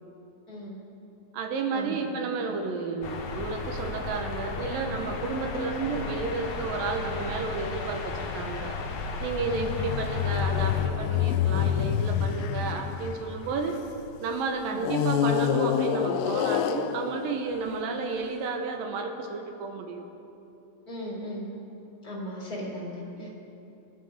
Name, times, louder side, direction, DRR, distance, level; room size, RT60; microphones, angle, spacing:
voice 1, 1.3-8.8 9.2-13.8 14.2-20.1 23.2-23.3, right 4 dB, 90° right, 3 dB, 2.8 m, -32 dB
sound 1, 3.0-10.9, left 3 dB, 60° left, 1.9 m, -34 dB
sound 2, 9.4-14.0 14.8-18.2, left 9 dB, 85° left, 2.3 m, -28 dB
voice 2, 20.9-21.5 22.0-23.3, equal, 25° left, -7 dB, 3.3 m, -37 dB
23.5 x 11.0 x 3.7 m, 2.9 s
omnidirectional pair, 4.0 m